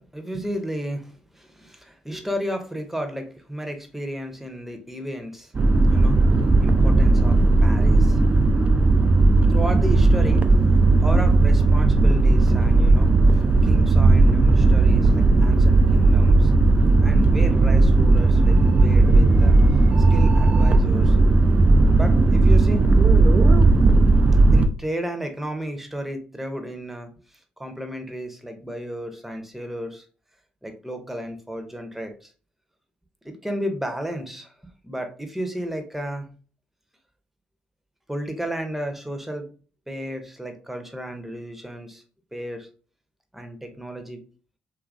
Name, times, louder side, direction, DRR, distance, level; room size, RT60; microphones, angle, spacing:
voice 1, 0.0-5.5 5.8-6.3 6.6-8.2 8.9-9.1 9.5-10.4 11.0-16.5 17.0-19.6 20.1-21.2 21.8-22.9 24.4-30.1 30.6-32.3 33.2-34.5 34.8-36.3 38.1-39.5 39.9-42.0 42.3-42.7 43.3-44.2, equal, 5° right, 5 dB, 0.8 m, -33 dB
sound 1, 5.5-24.7, right 2 dB, 35° right, 0.4 m, -16 dB
2.8 x 2.5 x 2.4 m, 0.39 s
hypercardioid pair, 45°, 4 cm